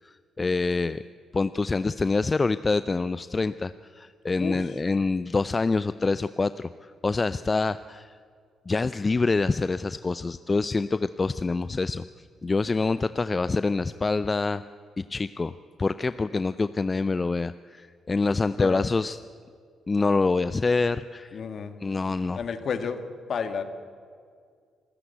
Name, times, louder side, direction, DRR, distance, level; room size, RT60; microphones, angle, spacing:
voice 1, 0.4-1.0 1.3-6.7 7.0-8.1 8.7-12.0 12.4-14.6 15.0-15.5 15.8-19.2 19.9-21.4 21.8-22.4, left 3 dB, 30° left, 14 dB, 0.5 m, -26 dB
voice 2, 4.4-4.8 18.6-18.8 21.3-21.8 22.3-23.0 23.3-23.6, left 6 dB, 55° left, 9 dB, 1.8 m, -31 dB
26.5 x 14.0 x 8.1 m, 2.1 s
hypercardioid pair, 45°, 0 cm